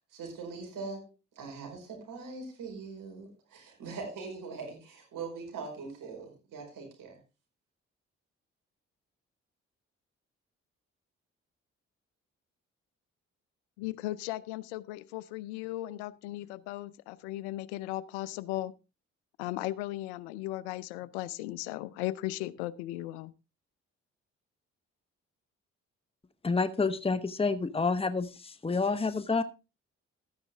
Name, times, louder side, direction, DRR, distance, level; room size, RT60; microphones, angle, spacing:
voice 1, 0.1-1.1 1.4-7.2, right 4 dB, 70° right, 3 dB, 5.1 m, -42 dB
voice 2, 13.8-18.7 19.4-23.3, left 16 dB, 90° left, 18 dB, 0.6 m, -37 dB
voice 3, 26.4-29.4, left 4 dB, 15° left, 12 dB, 1.1 m, -29 dB
13.0 x 9.9 x 3.5 m, 0.29 s
hypercardioid pair, 45°, 34 cm